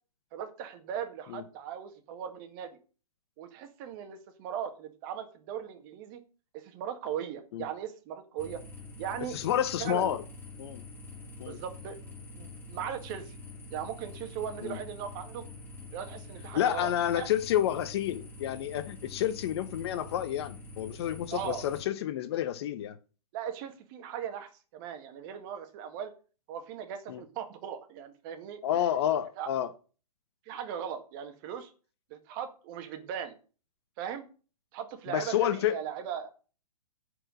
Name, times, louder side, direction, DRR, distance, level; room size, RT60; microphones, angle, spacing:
voice 1, 0.3-2.8 3.4-6.2 6.5-8.6 9.0-9.4 9.8-10.2 11.4-13.4 13.7-15.4 15.9-17.3 21.3-21.6 23.3-26.1 26.5-28.6 29.4-29.5 30.5-31.7 32.1-33.4 34.0-34.2 34.7-36.3, right 9 dB, 35° right, 1.8 m, -38 dB
sound 1, 8.4-21.8, left 3 dB, 10° left, 2.1 m, -46 dB
voice 2, 9.3-10.2 10.6-10.8 11.4-11.6 14.6-14.8 16.5-23.0 27.1-27.2 28.6-29.7 35.1-35.8, left 11 dB, 40° left, 0.9 m, -29 dB
10.0 x 4.9 x 7.6 m
hypercardioid pair, 140°, 20 cm